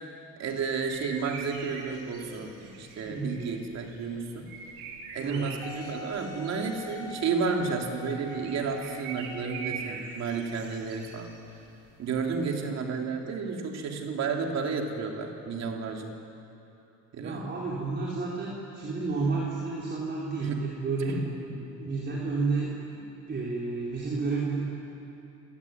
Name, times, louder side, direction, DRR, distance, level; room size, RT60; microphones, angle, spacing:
voice 1, 0.4-4.5 5.1-11.3 12.0-16.1 17.1-17.5 20.4-20.6 21.1-21.3, right 5 dB, 55° right, 2 dB, 3.4 m, -32 dB
sound 1, 0.7-12.4, right 5 dB, 90° right, 4.1 m, -44 dB
voice 2, 3.0-3.4 5.2-5.5 17.2-24.6, right 3 dB, 35° right, -5 dB, 4.5 m, -31 dB
Wind instrument woodwind instrument, 5.6-9.9 10.6-10.7, left 3 dB, 10° left, 1.4 m, -43 dB
27.0 x 17.0 x 9.7 m, 2.8 s
cardioid pair, 110°, 31 cm